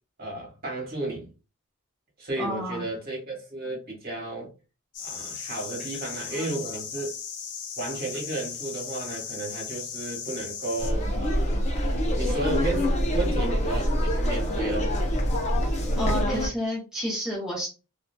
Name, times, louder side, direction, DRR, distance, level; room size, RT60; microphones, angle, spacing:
voice 1, 0.2-1.3 2.2-4.5 5.0-7.1 7.8-11.5 12.1-14.9 16.1-16.4, right 2 dB, 45° right, 1.3 m, -33 dB
voice 2, 2.4-2.8 6.3-6.4 16.0-17.7, equal, 5° right, 0.8 m, -30 dB
sound 1, 4.9-10.9, left 7 dB, 85° left, 0.6 m, -37 dB
sound 2, 10.8-16.5, equal, 30° left, 0.5 m, -25 dB
2.7 x 2.4 x 2.2 m
head